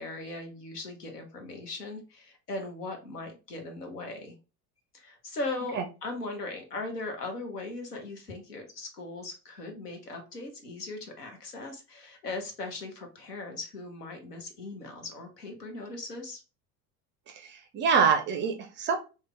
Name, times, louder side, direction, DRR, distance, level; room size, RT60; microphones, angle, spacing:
voice 1, 0.0-4.3 4.9-16.4, left 2 dB, 80° left, 4 dB, 0.9 m, -39 dB
voice 2, 17.3-19.0, right 6 dB, 25° right, 5 dB, 0.4 m, -26 dB
3.3 x 2.2 x 3.1 m, 0.31 s
figure-of-eight pair, 65°, 47 cm